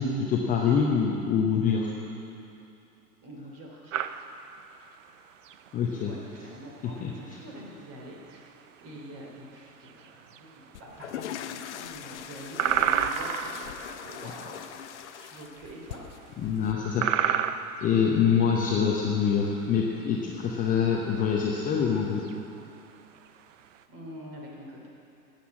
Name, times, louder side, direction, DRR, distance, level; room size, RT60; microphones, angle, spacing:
voice 1, 0.0-1.9 5.7-6.1 7.0-7.1 16.4-17.1 17.8-22.2, left 6 dB, 15° left, -1 dB, 0.8 m, -25 dB
voice 2, 3.2-4.0 6.1-8.5 8.8-14.6 15.1-16.0 23.9-24.9, equal, 30° right, -1 dB, 3.0 m, -45 dB
sound 1, 3.9-23.8, right 9 dB, 50° right, 0.7 m, -33 dB
sound 2, 10.7-16.7, left 10 dB, 45° left, 0.6 m, -41 dB
12.5 x 8.5 x 7.5 m, 2.8 s
figure-of-eight pair, 100°, 50 cm